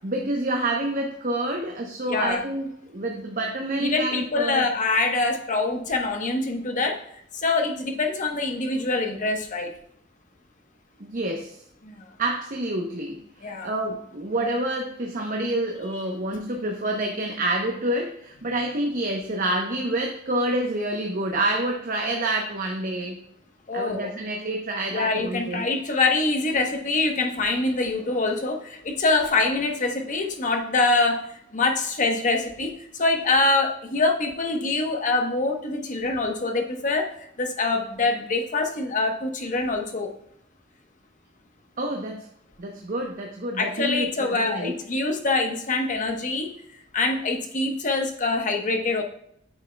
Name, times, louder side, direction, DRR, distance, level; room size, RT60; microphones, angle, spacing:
voice 1, 0.0-4.7 11.0-11.6 12.2-23.2 23.7-25.6 41.8-42.3 42.6-44.8, right 1 dB, 45° right, 1 dB, 0.8 m, -28 dB
voice 2, 2.1-2.4 3.8-7.0 7.3-9.7 11.8-12.1 13.4-13.7 23.7-24.1 24.9-31.3 31.5-37.1 37.4-40.1 43.6-46.5 46.9-49.0, left 3 dB, 40° left, 4 dB, 1.0 m, -24 dB
8.9 x 6.2 x 2.3 m, 0.71 s
head